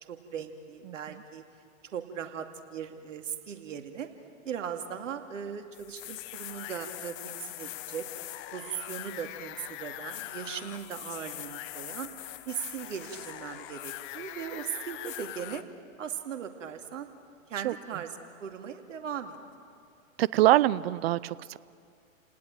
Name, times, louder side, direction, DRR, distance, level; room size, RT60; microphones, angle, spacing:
voice 1, 0.1-1.4 1.9-4.1 4.4-8.0 8.5-12.1 12.5-15.6 16.0-17.1 17.5-19.4, right 8 dB, 65° right, 6 dB, 2.5 m, -38 dB
voice 2, 0.9-1.2 17.6-17.7 20.2-21.6, right 15 dB, 50° right, 20 dB, 0.8 m, -24 dB
sound 1, 5.7-15.6, left 15 dB, 30° left, 1.0 m, -42 dB
30.0 x 19.0 x 9.0 m, 2.4 s
hypercardioid pair, 120°, 40 cm